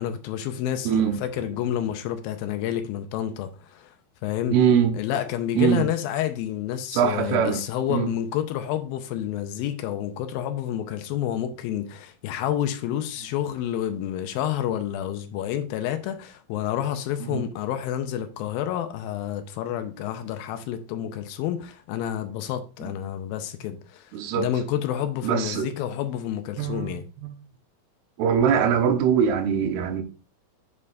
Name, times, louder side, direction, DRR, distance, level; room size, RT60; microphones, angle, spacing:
voice 1, 0.0-3.9 4.2-4.6 4.9-27.1, left 11 dB, 80° left, 2.4 m, -29 dB
voice 2, 0.9-1.5 4.5-5.0 5.6-5.9 6.9-7.6 7.9-8.1 17.3-17.4 22.8-22.9 24.1-24.5 25.2-25.7 26.6-26.9 27.2-27.3 28.2-30.0, right 7 dB, 90° right, 2.8 m, -22 dB
8.1 x 5.4 x 2.5 m
omnidirectional pair, 4.4 m